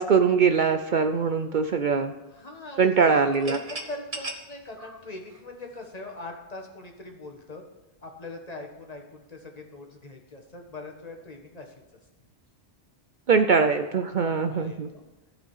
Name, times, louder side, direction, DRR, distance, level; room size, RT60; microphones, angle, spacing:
voice 1, 0.0-2.1 2.8-3.6 13.3-14.9, right 5 dB, 55° right, 8 dB, 0.7 m, -22 dB
voice 2, 2.3-3.1 3.4-7.6 8.0-11.7 14.2-15.1, left 2 dB, 40° left, 1 dB, 1.6 m, -41 dB
sound 1, 3.2-6.0, right 2 dB, 35° right, 1.1 m, -39 dB
15.0 x 5.1 x 5.5 m, 1.1 s
omnidirectional pair, 1.1 m